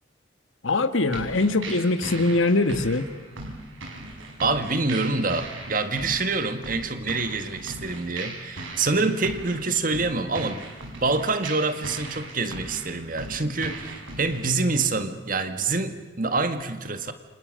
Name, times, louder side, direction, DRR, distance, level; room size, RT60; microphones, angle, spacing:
voice 1, 0.6-3.0, left 2 dB, 85° left, 10 dB, 1.6 m, -22 dB
sound 1, 1.1-14.5, right 2 dB, 85° right, 5.8 m, -39 dB
voice 2, 4.4-10.6 11.0-17.1, right 3 dB, 45° right, 9 dB, 1.7 m, -26 dB
29.5 x 27.0 x 6.6 m, 1.3 s
head